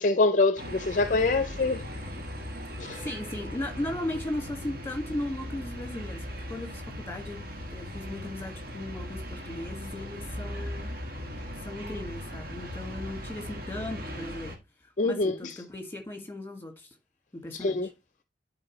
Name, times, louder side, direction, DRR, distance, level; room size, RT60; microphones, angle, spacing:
voice 1, 0.0-1.9 2.8-3.0 15.0-15.6 17.5-17.9, left 3 dB, 45° left, 0.5 m, -25 dB
sound 1, 0.6-14.6, equal, 55° right, 1.7 m, -38 dB
voice 2, 2.9-6.2 6.5-7.4 7.7-10.9 11.6-14.6 15.0-16.9 17.3-17.8, left 1 dB, 10° left, 1.8 m, -37 dB
10.5 x 4.3 x 3.1 m
head